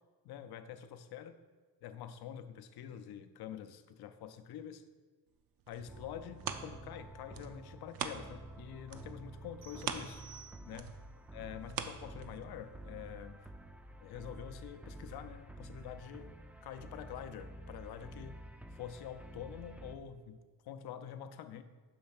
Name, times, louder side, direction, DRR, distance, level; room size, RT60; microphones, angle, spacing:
voice 1, 0.2-1.4 1.8-4.8 5.7-10.2 10.6-10.9 11.3-13.5 14.0-18.4 18.7-20.4 20.6-21.6, left 9 dB, 75° left, 10 dB, 0.5 m, -47 dB
sound 1, 5.4-8.6 8.9-12.7 13.2-13.3, right 7 dB, 65° right, 0.5 m, -43 dB
sound 2, 5.9-20.0, right 1 dB, 5° right, 0.3 m, -50 dB
sound 3, 9.6-11.1, right 7 dB, 90° right, 0.9 m, -56 dB
6.5 x 3.2 x 5.8 m, 1.4 s
cardioid pair, 90°, 38 cm